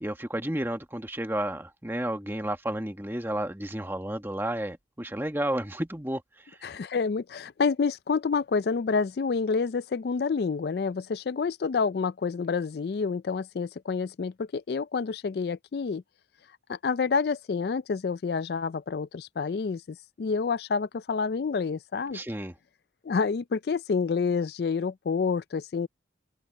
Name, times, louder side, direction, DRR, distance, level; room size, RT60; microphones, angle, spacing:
voice 1, 0.0-6.6 22.1-22.5, right 1 dB, 10° right, 1.2 m, -32 dB
voice 2, 6.6-16.0 16.7-22.2 23.0-25.9, left 5 dB, 55° left, 0.4 m, -28 dB
open air
head